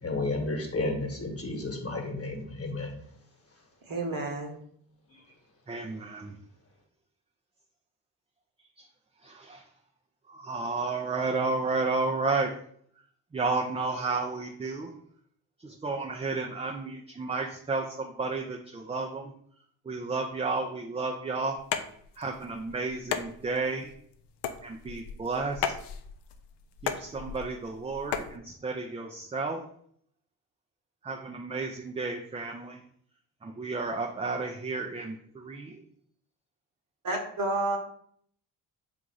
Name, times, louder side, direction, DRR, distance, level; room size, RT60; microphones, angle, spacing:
voice 1, 0.0-3.0, left 2 dB, 30° left, 2 dB, 1.3 m, -32 dB
voice 2, 3.8-4.6 37.0-37.8, right 2 dB, 45° right, 3 dB, 1.1 m, -30 dB
voice 3, 5.7-6.4 8.8-8.9 9.2-9.7 10.3-12.6 13.3-15.0 15.6-19.3 19.8-21.6 22.2-23.9 24.6-25.8 26.8-29.6 31.0-32.8 33.4-35.8, right 3 dB, 15° right, 1 dB, 0.4 m, -32 dB
sound 1, 21.6-28.4, left 8 dB, 60° left, 0.6 m, -36 dB
3.6 x 2.6 x 4.6 m, 0.64 s
hypercardioid pair, 45°, 48 cm